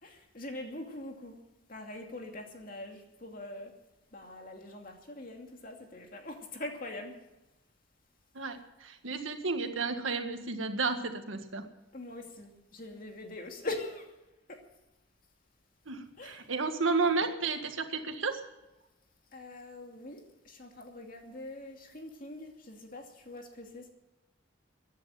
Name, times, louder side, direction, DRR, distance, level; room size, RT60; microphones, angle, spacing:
voice 1, 0.0-1.4 1.7-3.7 4.1-7.1 11.9-14.0 14.5-14.6 16.2-16.5 19.3-20.2 20.4-23.9, left 2 dB, 45° left, 3 dB, 2.5 m, -43 dB
voice 2, 8.4-11.6 15.9-18.4, right 4 dB, 90° right, 6 dB, 1.8 m, -32 dB
15.5 x 10.5 x 7.8 m, 1.0 s
head